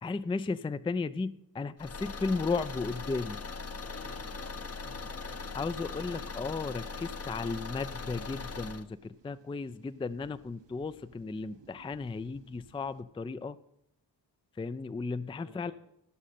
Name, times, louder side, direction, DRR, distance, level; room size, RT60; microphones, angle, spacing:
voice 1, 0.0-3.4 5.5-13.6 14.6-15.7, left 4 dB, 15° left, 14 dB, 0.4 m, -35 dB
Car / Engine, 1.8-8.9, left 4 dB, 35° left, 0.8 m, -40 dB
voice 2, 3.8-6.2 15.2-15.7, left 1 dB, 85° left, -5 dB, 4.4 m, -53 dB
sound 1, 5.2-13.0, right 6 dB, 70° right, 1.0 m, -62 dB
16.5 x 6.3 x 4.3 m, 0.79 s
cardioid pair, 45°, 44 cm